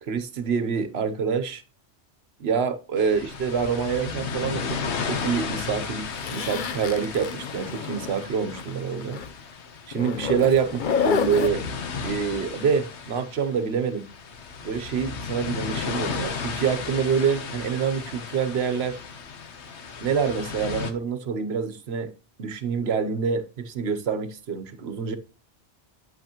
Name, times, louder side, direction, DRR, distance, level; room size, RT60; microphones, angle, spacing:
voice 1, 0.0-1.6 2.4-9.2 9.9-10.7 11.0-14.1 14.6-19.0 20.0-22.1 22.4-25.2, right 6 dB, 65° right, 1.1 m, -26 dB
sound 1, 3.0-20.9, left 5 dB, 75° left, 1.2 m, -34 dB
Zipper (clothing), 6.2-8.7 9.0-9.3 9.9-11.5, left 7 dB, 50° left, 0.8 m, -29 dB
9.4 x 7.9 x 3.0 m
omnidirectional pair, 1.2 m